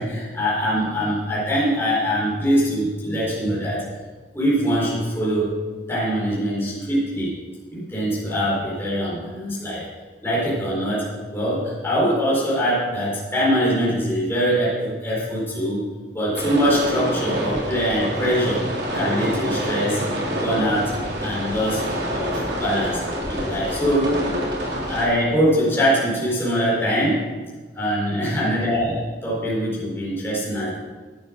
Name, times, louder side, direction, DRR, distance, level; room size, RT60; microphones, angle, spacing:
voice 1, 0.0-3.8 4.3-5.6 5.9-7.3 7.7-9.9 10.2-15.9 16.1-18.6 18.9-20.1 20.4-20.9 21.2-21.8 22.1-23.0 23.3-24.2 24.9-27.2 27.7-30.8, equal, 15° left, -8 dB, 4.4 m, -23 dB
sound 1, 16.3-25.1, equal, 70° right, 3.1 m, -27 dB
11.0 x 8.7 x 6.3 m, 1.3 s
head